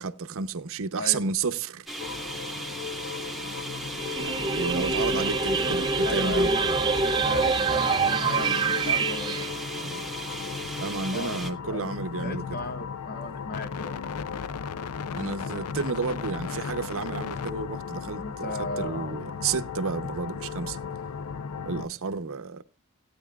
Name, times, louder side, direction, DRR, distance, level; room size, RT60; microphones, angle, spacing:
voice 1, 0.0-1.9 4.2-6.5 9.8-10.1 10.8-12.4 15.2-20.8 21.7-22.6, right 5 dB, 65° right, 0.7 m, -31 dB
sound 1, 1.9-11.5, right 1 dB, ahead, 1.2 m, -37 dB
sound 2, 2.0-21.9, left 6 dB, 80° left, 0.5 m, -36 dB
sound 3, 4.0-9.5, right 4 dB, 20° right, 0.6 m, -25 dB
voice 2, 6.0-9.3 11.1-11.4 11.7-11.9 12.2-14.1 18.2-19.2, left 3 dB, 45° left, 0.8 m, -36 dB
17.0 x 9.4 x 2.3 m
head